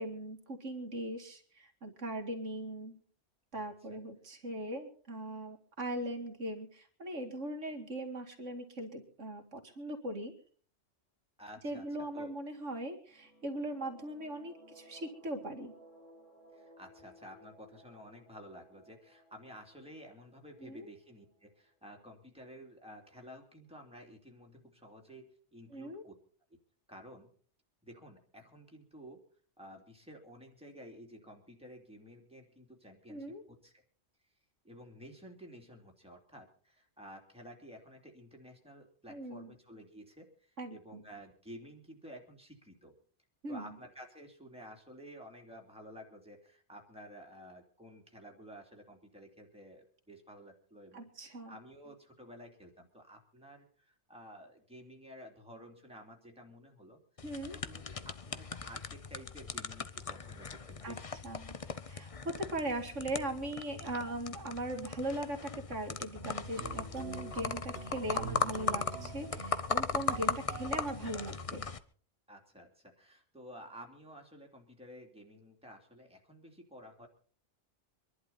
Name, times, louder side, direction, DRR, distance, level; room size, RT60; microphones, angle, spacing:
voice 1, 0.0-3.0 3.5-10.3 11.6-15.7 20.6-20.9 25.7-26.0 33.1-33.4 39.1-39.5 40.6-41.0 43.4-43.7 50.9-51.5 57.2-57.6 60.8-61.0 61.2-61.6 61.9-71.7, right 1 dB, 85° right, 3 dB, 2.5 m, -40 dB
voice 2, 11.4-11.8 12.1-12.3 16.5-26.1 26.5-26.6 26.9-27.3 27.8-29.2 29.6-33.8 34.6-42.9 43.5-57.0 57.6-61.1 72.3-77.1, equal, 5° right, 1 dB, 3.0 m, -52 dB
sound 1, 13.1-21.7, equal, 85° left, 2.3 m, -59 dB
sound 2, 57.2-71.8, left 5 dB, 35° left, 0.8 m, -38 dB
sound 3, 66.2-71.3, right 5 dB, 65° right, 1.6 m, -46 dB
25.0 x 11.5 x 4.2 m, 0.43 s
omnidirectional pair, 1.2 m